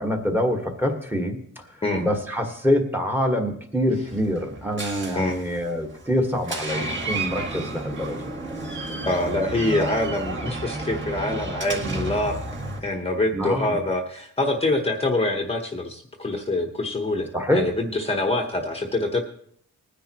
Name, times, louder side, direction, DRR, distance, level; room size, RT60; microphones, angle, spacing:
voice 1, 0.0-8.2 13.3-13.8 17.3-17.7, equal, 5° right, 4 dB, 1.5 m, -25 dB
Door, 4.1-12.8, right 2 dB, 35° right, 2.2 m, -32 dB
voice 2, 9.0-12.4 12.8-19.2, left 2 dB, 15° left, 3 dB, 1.0 m, -25 dB
20.5 x 10.0 x 3.0 m, 0.64 s
wide cardioid pair, 155°, 34 cm